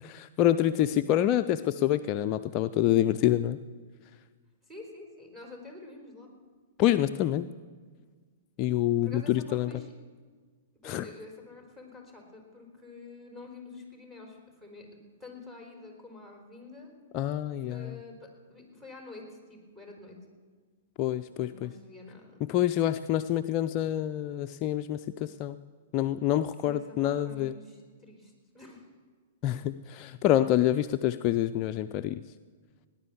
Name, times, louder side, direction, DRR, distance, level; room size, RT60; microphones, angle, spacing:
voice 1, 0.0-3.6 6.8-7.5 8.6-9.7 10.8-11.1 17.1-18.0 21.0-21.7 22.5-25.6 25.9-27.5 29.4-32.2, left 12 dB, 35° left, 9 dB, 0.4 m, -27 dB
voice 2, 4.6-6.3 9.0-9.9 10.8-16.9 17.6-20.2 21.4-22.4 26.6-28.9, left 3 dB, 10° right, 0 dB, 4.0 m, -48 dB
17.5 x 10.5 x 7.1 m, 1.5 s
figure-of-eight pair, 110°, 0 cm